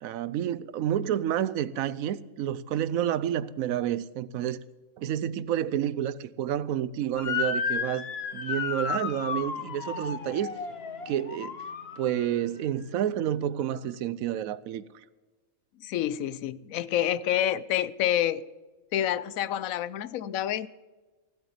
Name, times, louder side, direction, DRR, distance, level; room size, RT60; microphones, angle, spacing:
voice 1, 0.0-4.6 5.0-8.1 8.3-10.5 11.1-11.6 12.0-14.8, right 10 dB, 80° right, 1.0 m, -29 dB
Motor vehicle (road) / Siren, 7.2-12.4, left 6 dB, 50° left, 1.2 m, -33 dB
voice 2, 15.8-18.4 18.9-20.7, left 11 dB, 75° left, 1.0 m, -28 dB
15.0 x 8.0 x 7.7 m
omnidirectional pair, 1.5 m